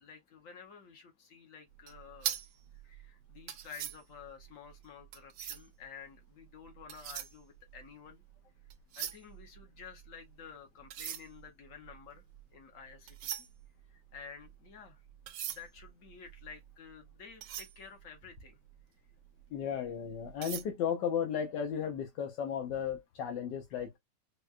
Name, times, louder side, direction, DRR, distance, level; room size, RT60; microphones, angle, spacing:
voice 1, 0.0-2.4 2.7-8.2 9.0-12.2 12.5-13.5 13.9-15.0 15.5-18.6 23.7-23.8, left 6 dB, 55° left, 1.1 m, -51 dB
sound 1, 1.8-5.8 6.6-8.3 8.6-10.3 10.8-18.8 19.2-19.4 19.8-20.6, right 11 dB, 90° right, 1.3 m, -42 dB
voice 2, 19.5-24.0, left 8 dB, 85° left, 1.4 m, -34 dB
4.5 x 2.2 x 2.4 m
omnidirectional pair, 1.9 m